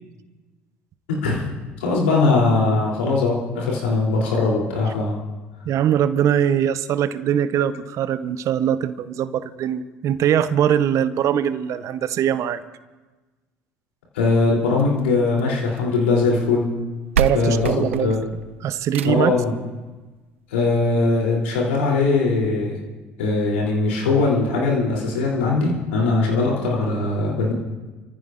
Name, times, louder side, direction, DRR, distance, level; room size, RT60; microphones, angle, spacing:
voice 1, 1.8-5.2 14.1-16.7 17.3-18.2 19.0-19.6 20.5-22.8 23.2-27.5, left 3 dB, 80° left, -2 dB, 3.3 m, -20 dB
voice 2, 5.7-12.6 17.2-18.1 18.6-19.3, right 9 dB, 55° right, 14 dB, 0.8 m, -21 dB
sound 1, 14.8-16.0 16.8-16.9 17.1-19.4 20.8-20.9 21.4-21.5 21.7-21.8 22.4-22.5, right 7 dB, 90° right, 0.4 m, -28 dB
29.5 x 14.5 x 2.6 m, 1.2 s
hypercardioid pair, 60°, 6 cm